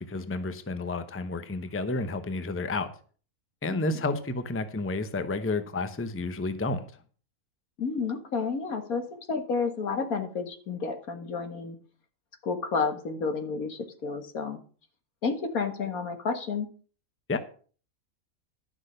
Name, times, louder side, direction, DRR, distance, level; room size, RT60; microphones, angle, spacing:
voice 1, 0.0-2.9 3.6-6.8 17.3-17.4, left 3 dB, 10° left, 10 dB, 0.7 m, -31 dB
voice 2, 3.7-4.0 7.8-11.8 12.4-14.6 15.2-16.7, left 5 dB, 80° left, 7 dB, 2.0 m, -31 dB
11.5 x 6.2 x 6.6 m, 0.42 s
omnidirectional pair, 1.5 m